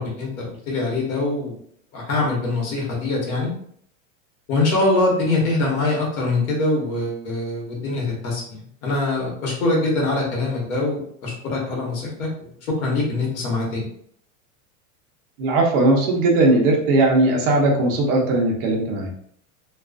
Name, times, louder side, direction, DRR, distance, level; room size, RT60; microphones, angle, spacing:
voice 1, 0.0-1.6 1.9-3.5 4.5-12.3 12.8-13.9, left 2 dB, 85° left, -2 dB, 1.1 m, -23 dB
voice 2, 15.4-19.1, right 2 dB, 40° right, 0 dB, 0.6 m, -18 dB
2.4 x 2.3 x 2.3 m, 0.66 s
supercardioid pair, 175°, 40 cm